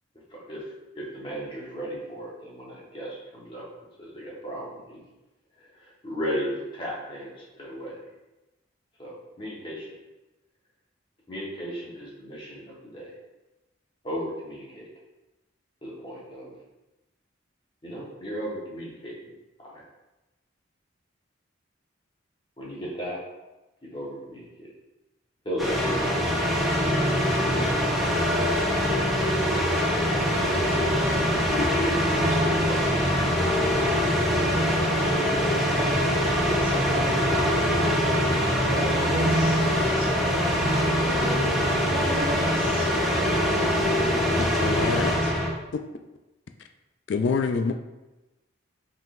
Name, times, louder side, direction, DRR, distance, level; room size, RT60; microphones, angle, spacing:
voice 1, 0.3-0.7 0.9-3.7 4.0-5.0 5.6-8.0 9.0-9.9 11.3-13.1 14.0-14.9 15.8-16.5 17.8-19.3 19.6-19.8 22.6-23.2 23.8-24.7 25.4-27.5 31.5-33.0 33.8-34.2, equal, 25° left, -5 dB, 1.1 m, -35 dB
sound 1, 25.6-45.5, equal, ahead, 0.7 m, -23 dB
voice 2, 35.0-36.0 36.4-38.1 38.6-41.4 41.9-42.9, equal, 25° right, -6 dB, 1.2 m, -35 dB
voice 3, 44.4-45.3 47.1-47.7, left 4 dB, 65° left, 6 dB, 0.3 m, -26 dB
5.6 x 3.7 x 2.5 m, 1.0 s
head